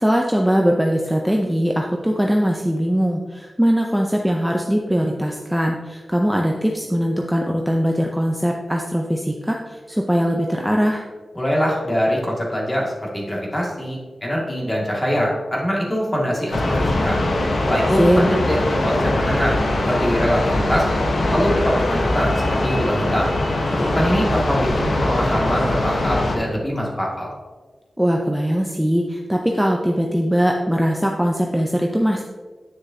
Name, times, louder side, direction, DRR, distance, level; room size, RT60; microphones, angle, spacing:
voice 1, 0.0-11.0 18.0-18.2 28.0-32.2, equal, 5° right, 1 dB, 0.6 m, -20 dB
voice 2, 11.3-17.2 17.7-20.9 21.3-23.3 23.8-27.3, equal, 20° left, -3 dB, 2.2 m, -23 dB
sound 1, 16.5-26.4, left 1 dB, 80° left, 1.2 m, -21 dB
9.7 x 6.5 x 2.8 m, 1.4 s
wide cardioid pair, 75°, 0 cm